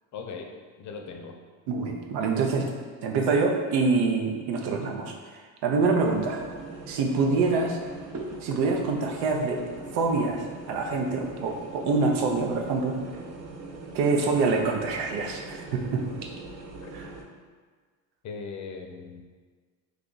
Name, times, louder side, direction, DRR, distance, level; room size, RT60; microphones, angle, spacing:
voice 1, 0.1-0.5 0.8-1.4 7.5-7.6 16.8-16.9 18.2-19.2, left 5 dB, 45° left, 3 dB, 0.5 m, -39 dB
voice 2, 1.7-2.7 3.0-6.5 6.9-7.8 8.4-9.6 9.9-13.0 13.9-16.3 16.9-17.1, right 4 dB, 85° right, 2 dB, 0.6 m, -26 dB
sound 1, 6.0-17.2, right 3 dB, 45° right, 0.6 m, -41 dB
3.2 x 2.4 x 3.8 m, 1.5 s
cardioid pair, 100°, 39 cm